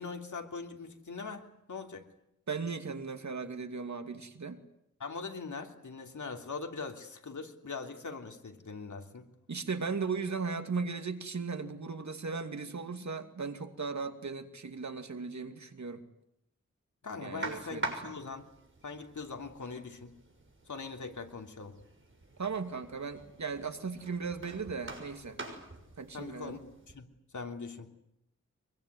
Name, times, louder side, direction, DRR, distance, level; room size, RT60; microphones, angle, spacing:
voice 1, 0.0-2.1 5.0-9.3 17.0-18.5 18.8-20.1 20.7-21.8 26.1-27.0 27.3-27.9, left 4 dB, 75° left, 4 dB, 3.2 m, -41 dB
voice 2, 2.5-4.6 9.5-16.0 17.2-18.1 22.4-25.4 26.0-26.6, right 4 dB, 70° right, 7 dB, 2.6 m, -37 dB
sound 1, 17.4-27.0, right 2 dB, 40° right, 6.4 m, -45 dB
24.5 x 22.5 x 9.5 m, 0.81 s
wide cardioid pair, 75°, 30 cm